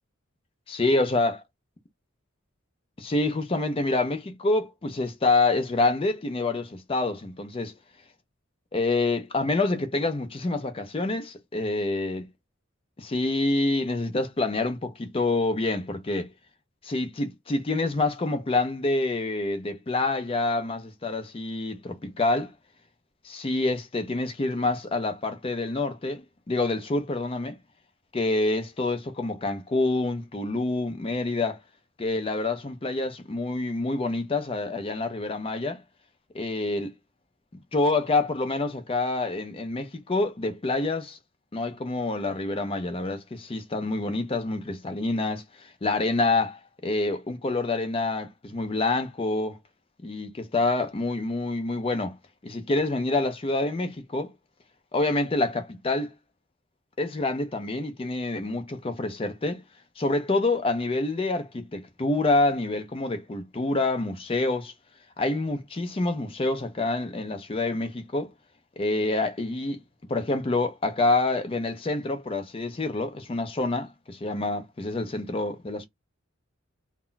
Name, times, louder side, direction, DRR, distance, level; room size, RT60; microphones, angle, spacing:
voice 1, 0.7-1.4 3.0-7.7 8.7-12.3 13.0-16.3 16.8-22.5 23.2-27.6 28.1-31.6 32.0-35.8 36.3-36.9 37.7-41.2 41.5-49.6 50.0-52.1 52.4-54.3 54.9-56.1 57.0-59.6 60.0-64.7 65.2-68.3 68.8-69.8 70.1-75.9, left 2 dB, 25° left, 0.5 m, -27 dB
2.2 x 2.1 x 3.8 m
head